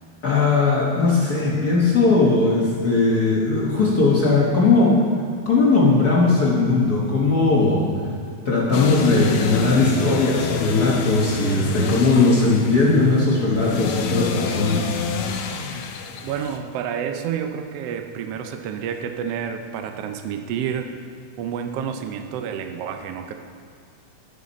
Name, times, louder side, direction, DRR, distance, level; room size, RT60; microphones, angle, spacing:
voice 1, 0.2-5.0 5.4-7.9 8.4-15.0, left 3 dB, 50° left, -4 dB, 1.2 m, -18 dB
sound 1, 8.7-16.6, left 6 dB, 80° left, 2.1 m, -29 dB
voice 2, 11.4-11.7 15.3-15.4 16.2-20.9 21.4-23.3, right 8 dB, 80° right, 6 dB, 1.4 m, -29 dB
11.0 x 10.0 x 4.1 m, 2.4 s
omnidirectional pair, 3.3 m